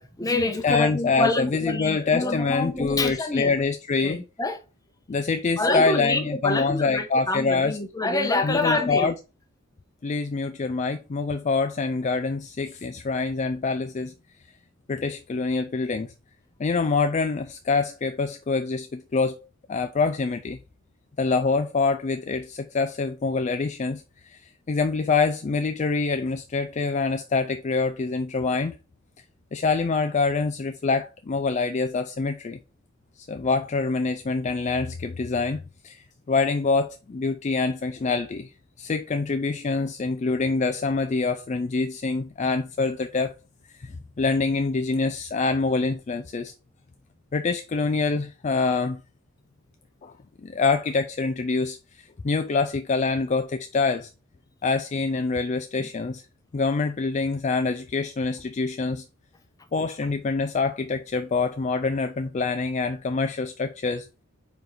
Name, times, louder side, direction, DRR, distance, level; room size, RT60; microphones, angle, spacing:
voice 1, 0.0-3.6 4.0-4.6 5.6-9.1 55.8-55.9, left 2 dB, 20° left, 1.0 m, -26 dB
voice 2, 0.6-4.2 5.1-7.8 8.4-9.1 10.0-14.1 14.9-16.1 16.6-19.4 19.7-20.6 21.2-28.7 29.5-32.6 33.2-38.5 38.8-43.3 43.7-43.9 44.2-46.5 47.3-49.0 50.0-50.1 50.4-54.1 54.6-56.2 56.5-59.0 59.7-64.1, left 4 dB, 35° left, 0.4 m, -25 dB
4.7 x 4.5 x 4.9 m
head